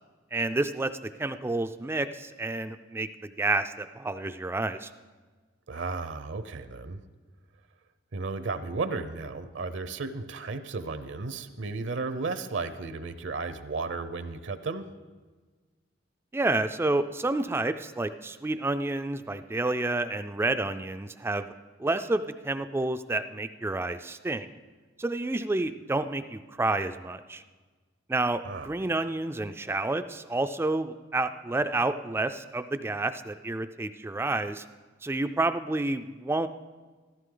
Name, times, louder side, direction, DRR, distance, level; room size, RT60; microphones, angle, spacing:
voice 1, 0.3-0.9 1.2-4.9 16.3-21.5 21.8-24.5 25.0-27.4 28.1-34.6 35.0-36.5, right 2 dB, 10° right, 10 dB, 0.3 m, -29 dB
voice 2, 5.7-7.0 8.1-14.8 28.4-28.7, right 3 dB, 65° right, 11 dB, 0.7 m, -34 dB
14.5 x 14.0 x 3.8 m, 1.4 s
head